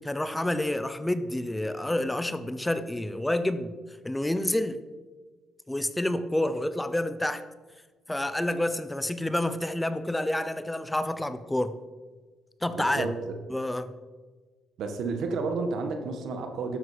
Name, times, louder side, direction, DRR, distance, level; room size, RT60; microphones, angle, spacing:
voice 1, 0.0-3.7 4.0-4.8 5.7-7.4 8.1-11.8 12.6-13.1 13.5-13.9, left 1 dB, 10° left, 12 dB, 0.6 m, -28 dB
voice 2, 12.7-13.3 14.8-16.8, right 4 dB, 75° right, 6 dB, 1.5 m, -31 dB
12.5 x 7.3 x 5.0 m, 1.4 s
cardioid pair, 90°, 0 cm